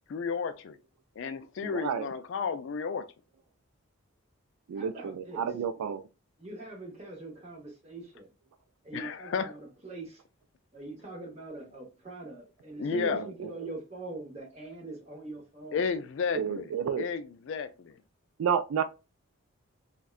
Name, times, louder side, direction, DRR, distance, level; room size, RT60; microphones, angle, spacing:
voice 1, 0.1-0.8 1.2-3.1 8.9-9.5 12.8-13.2 15.7-16.7 17.0-18.0, left 5 dB, 60° left, 0.3 m, -32 dB
voice 2, 1.6-2.1 4.7-6.0 12.9-13.3 16.3-17.1 18.4-18.8, right 7 dB, 85° right, 0.3 m, -31 dB
voice 3, 4.7-5.5 6.4-8.3 8.8-10.2 10.7-15.8, right 2 dB, 30° right, 0.9 m, -43 dB
3.6 x 2.2 x 2.3 m
head